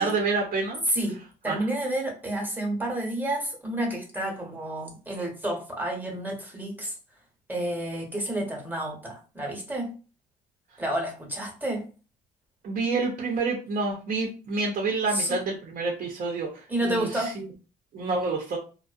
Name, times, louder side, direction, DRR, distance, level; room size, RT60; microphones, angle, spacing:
voice 1, 0.0-0.8 1.5-1.7 12.6-17.5 17.9-18.6, right 3 dB, 50° right, 0.6 m, -28 dB
voice 2, 0.9-6.9 7.5-9.9 10.8-11.9 15.1-15.4 16.7-17.3, right 1 dB, 10° right, 0.9 m, -30 dB
2.5 x 2.1 x 2.4 m
cardioid pair, 110°, 17 cm